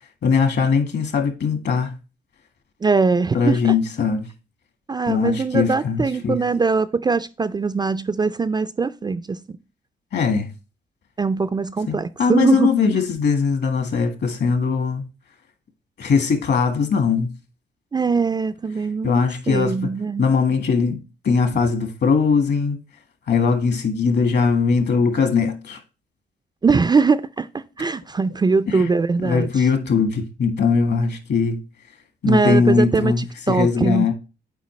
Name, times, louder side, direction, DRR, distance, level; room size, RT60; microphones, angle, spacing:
voice 1, 0.2-1.9 3.3-4.3 5.1-6.4 10.1-10.5 11.9-15.0 16.0-17.3 19.0-19.9 20.2-22.8 23.3-25.8 28.7-28.9 29.2-31.6 32.2-34.1, left 5 dB, 60° left, 1.7 m, -20 dB
voice 2, 2.8-3.8 4.9-9.4 11.2-12.7 17.9-19.2 19.5-20.3 26.6-29.7 32.2-34.1, right 4 dB, 20° right, 0.4 m, -21 dB
8.2 x 4.4 x 3.2 m
cardioid pair, 90°, 20 cm